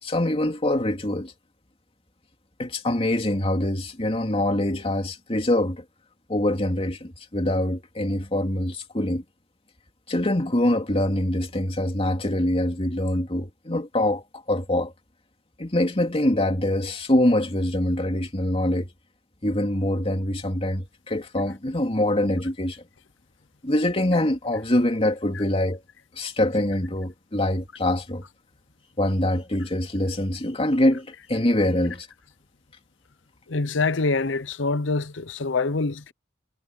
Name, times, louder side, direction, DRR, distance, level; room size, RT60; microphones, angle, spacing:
voice 1, 0.0-1.3 2.6-5.8 6.3-9.2 10.1-14.9 15.6-18.9 19.4-22.8 23.6-25.8 26.2-28.2 29.0-32.1, left 1 dB, 30° left, 2.7 m, -24 dB
voice 2, 33.5-36.1, left 3 dB, 80° left, 0.8 m, -25 dB
head